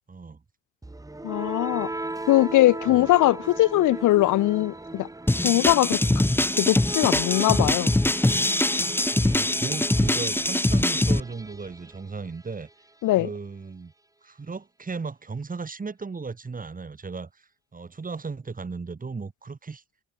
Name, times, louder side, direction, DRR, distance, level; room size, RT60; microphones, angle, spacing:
voice 1, 0.1-0.4 2.9-3.1 9.1-12.7 13.2-13.9 14.2-19.8, right 4 dB, 30° right, 2.9 m, -36 dB
sound 1, 0.8-12.7, right 2 dB, 10° right, 1.7 m, -38 dB
voice 2, 1.2-1.9 2.3-5.1 5.4-6.0 6.6-7.9 13.0-13.3, left 16 dB, 85° left, 1.2 m, -21 dB
sound 2, 5.3-11.2, left 1 dB, 5° left, 1.2 m, -23 dB
cardioid pair, 90°, 30 cm